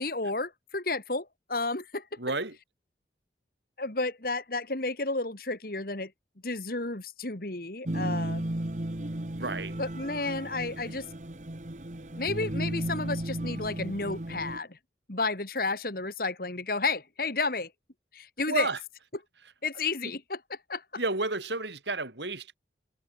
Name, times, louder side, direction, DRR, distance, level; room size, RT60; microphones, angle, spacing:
voice 1, 0.0-2.1 3.8-6.1 6.4-8.5 9.8-11.1 12.2-14.8 15.1-17.7 18.1-18.7 19.6-20.8, left 3 dB, 55° left, 2.2 m, -32 dB
voice 2, 2.2-2.6 9.3-9.8 18.5-18.8 21.0-22.6, right 2 dB, 75° right, 5.5 m, -31 dB
sound 1, 7.9-14.6, right 1 dB, 40° right, 1.5 m, -34 dB
head